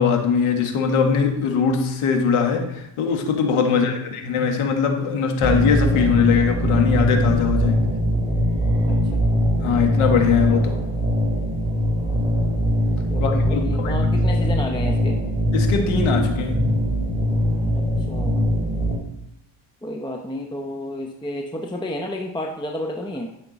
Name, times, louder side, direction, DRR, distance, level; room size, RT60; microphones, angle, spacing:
voice 1, 0.0-7.9 9.6-10.8 13.2-13.9 15.5-16.7, left 6 dB, 85° left, 4 dB, 1.7 m, -21 dB
sound 1, 5.4-19.0, equal, 10° right, 2.5 m, -21 dB
voice 2, 8.9-9.2 13.1-15.2 17.7-18.5 19.8-23.3, left 1 dB, 10° left, 3 dB, 0.7 m, -31 dB
12.0 x 5.9 x 4.0 m, 0.81 s
cardioid pair, 105°, 49 cm